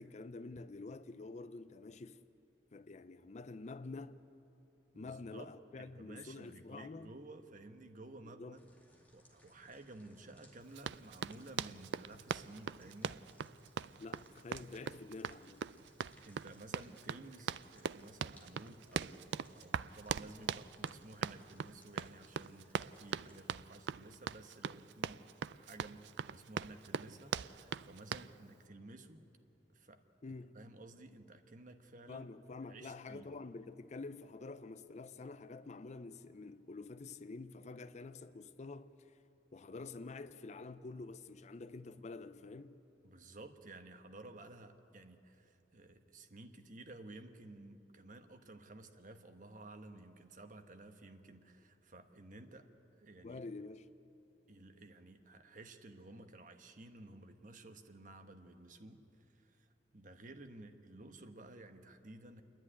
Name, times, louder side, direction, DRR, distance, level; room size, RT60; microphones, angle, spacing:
voice 1, 0.0-2.2 2.7-4.2 4.9-7.1 8.4-8.6 14.0-15.7 30.2-30.6 32.1-39.1 39.5-42.8 53.2-53.9, left 3 dB, 40° left, 0.5 m, -48 dB
voice 2, 4.9-5.5 5.8-8.6 9.1-13.2 13.7-14.0 16.2-25.2 25.5-29.2 29.7-30.0 30.5-32.3 32.7-33.3 43.0-52.7 52.9-53.4 54.5-62.4, right 2 dB, 45° right, 1.2 m, -54 dB
sound 1, 8.5-23.4, equal, 10° left, 2.3 m, -66 dB
Run, 10.7-28.3, right 7 dB, 75° right, 0.4 m, -41 dB
28.0 x 10.5 x 10.0 m
head